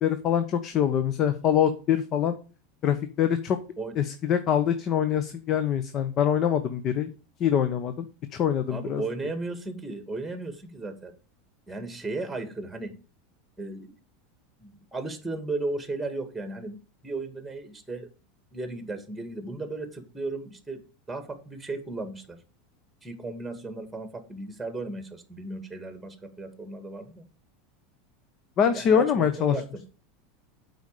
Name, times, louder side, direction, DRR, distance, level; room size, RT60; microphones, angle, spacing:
voice 1, 0.0-2.3 2.8-3.6 4.0-7.1 7.4-8.0 8.3-9.0 28.6-29.6, left 8 dB, 45° left, 10 dB, 0.9 m, -24 dB
voice 2, 8.7-11.1 11.7-12.9 13.6-13.9 14.6-16.8 17.0-18.1 18.5-20.8 21.1-22.4 23.0-27.2 28.7-29.8, right 2 dB, 5° right, 7 dB, 2.0 m, -35 dB
8.1 x 5.0 x 6.6 m, 0.36 s
hypercardioid pair, 105°, 0 cm